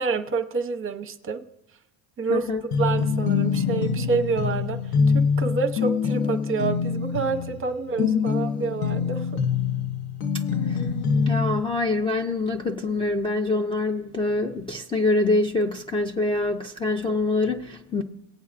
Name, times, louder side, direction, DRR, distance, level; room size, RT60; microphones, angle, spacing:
voice 1, 0.0-1.4 2.2-2.5 2.8-4.8 5.1-9.3, right 4 dB, 30° right, 0.7 m, -27 dB
voice 2, 2.3-2.6 8.0-8.4 10.7-10.8 11.3-18.0, left 2 dB, 15° left, 0.4 m, -25 dB
sound 1, 2.7-11.6, left 6 dB, 60° left, 0.8 m, -25 dB
19.0 x 8.2 x 2.5 m
cardioid pair, 130°, 42 cm